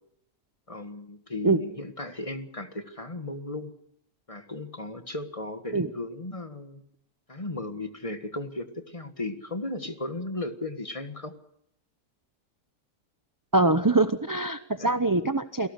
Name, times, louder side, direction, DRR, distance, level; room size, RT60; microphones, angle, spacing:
voice 1, 0.7-3.7 4.3-6.8 7.3-11.4 14.8-14.9, left 2 dB, 20° left, 8 dB, 1.6 m, -36 dB
voice 2, 13.5-15.7, right 2 dB, 25° right, 10 dB, 0.5 m, -23 dB
28.5 x 18.0 x 6.6 m, 0.75 s
omnidirectional pair, 1.7 m